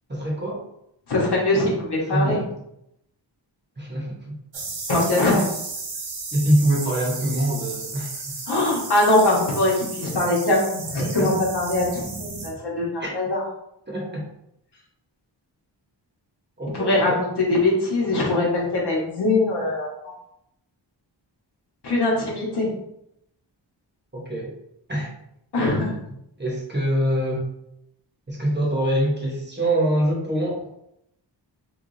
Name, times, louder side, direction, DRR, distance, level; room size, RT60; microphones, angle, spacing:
voice 1, 0.1-0.6 2.1-2.4 3.8-4.4 6.3-8.2 11.0-11.3 13.0-13.1 13.9-14.2 16.6-17.0 24.1-24.5 24.9-25.1 26.4-27.5 28.3-30.6, right 1 dB, 25° right, -4 dB, 1.0 m, -24 dB
voice 2, 1.1-2.4 4.9-5.5 8.5-13.4 16.7-20.1 21.8-22.7 25.5-26.0, left 2 dB, 65° left, -3 dB, 1.2 m, -22 dB
sound 1, 4.5-12.5, right 3 dB, 90° right, 0.9 m, -34 dB
3.3 x 3.2 x 2.6 m, 0.79 s
wide cardioid pair, 130°, 44 cm